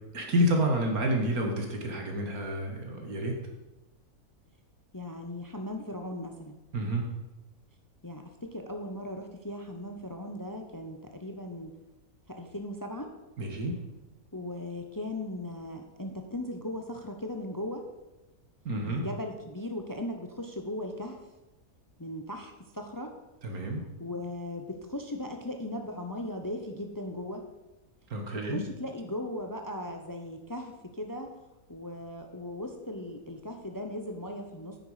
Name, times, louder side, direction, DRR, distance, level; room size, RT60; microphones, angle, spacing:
voice 1, 0.1-3.4 6.7-7.1 13.4-13.8 18.7-19.1 23.4-23.8 28.1-28.6, right 1 dB, 85° right, 2 dB, 2.3 m, -29 dB
voice 2, 4.9-6.6 8.0-11.7 12.3-13.1 14.3-17.8 18.9-21.2 22.0-23.1 24.0-27.4 28.4-31.3 31.7-34.8, left 1 dB, 20° left, 5 dB, 0.7 m, -38 dB
9.5 x 9.0 x 5.0 m, 1.0 s
omnidirectional pair, 1.5 m